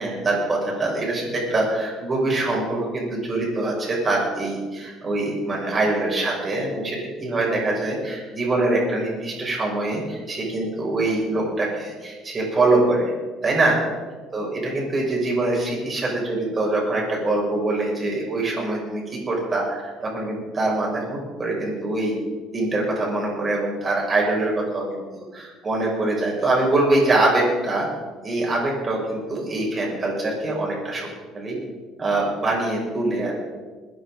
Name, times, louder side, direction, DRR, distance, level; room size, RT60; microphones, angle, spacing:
voice 1, 0.0-13.1 13.4-13.8 14.3-22.1 22.5-27.9 28.2-31.1 31.3-31.6 32.0-33.5, right 2 dB, 25° right, -2 dB, 6.1 m, -24 dB
21.5 x 10.0 x 5.0 m, 1.4 s
cardioid pair, 125°, 0 cm